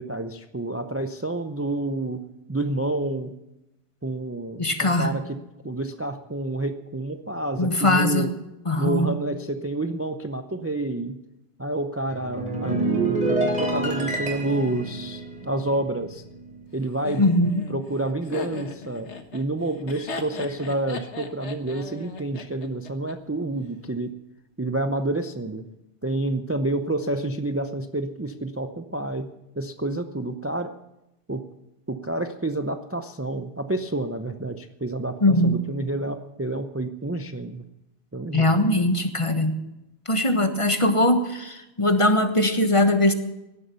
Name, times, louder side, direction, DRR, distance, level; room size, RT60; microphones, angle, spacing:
voice 1, 0.0-2.2 2.5-3.3 4.0-8.3 8.8-11.2 11.6-16.2 16.7-19.1 19.3-24.2 24.6-25.6 26.0-30.7 31.3-31.4 31.9-37.6 38.1-38.6, right 2 dB, 15° right, 8 dB, 0.5 m, -29 dB
voice 2, 4.6-5.1 7.6-8.3 8.6-9.2 17.2-17.6 35.2-35.6 38.3-39.5 40.1-43.1, left 1 dB, 30° left, 7 dB, 1.3 m, -21 dB
sound 1, 12.1-16.7 17.0-17.3, right 2 dB, 40° right, 3.5 m, -27 dB
Laughter, 17.0-23.1, left 4 dB, 85° left, 1.6 m, -37 dB
17.0 x 11.5 x 6.8 m, 0.94 s
omnidirectional pair, 1.1 m